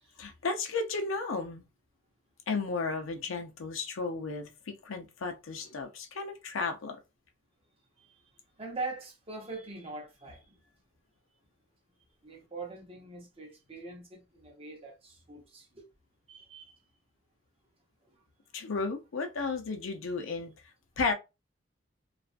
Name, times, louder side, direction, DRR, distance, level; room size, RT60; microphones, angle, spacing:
voice 1, 0.2-1.6 2.5-7.0 18.5-20.5 21.0-21.1, left 4 dB, 90° left, 0.6 m, -33 dB
voice 2, 8.6-10.5 12.2-15.9 16.3-16.7, right 3 dB, 30° right, 0.8 m, -42 dB
2.4 x 2.2 x 2.4 m
head